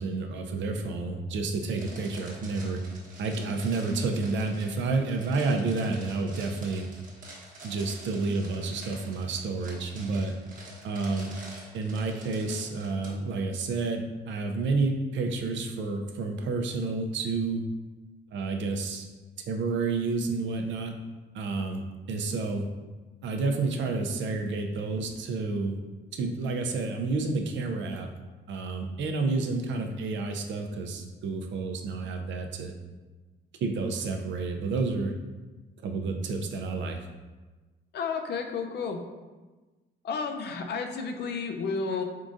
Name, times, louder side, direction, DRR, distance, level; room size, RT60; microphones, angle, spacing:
voice 1, 0.0-2.8 3.2-6.9 7.6-10.3 10.8-11.3 11.7-17.6 18.3-19.1 19.5-20.9 21.3-22.7 23.2-25.8 26.1-28.1 28.5-32.7 33.6-35.1 35.8-37.0, right 3 dB, 70° right, 4 dB, 0.5 m, -30 dB
sound 1, 1.7-13.1, right 2 dB, 40° right, 1.1 m, -47 dB
voice 2, 37.9-39.0 40.0-42.0, left 5 dB, 60° left, 5 dB, 0.5 m, -31 dB
3.7 x 3.6 x 2.5 m, 1.3 s
cardioid pair, 90°, 20 cm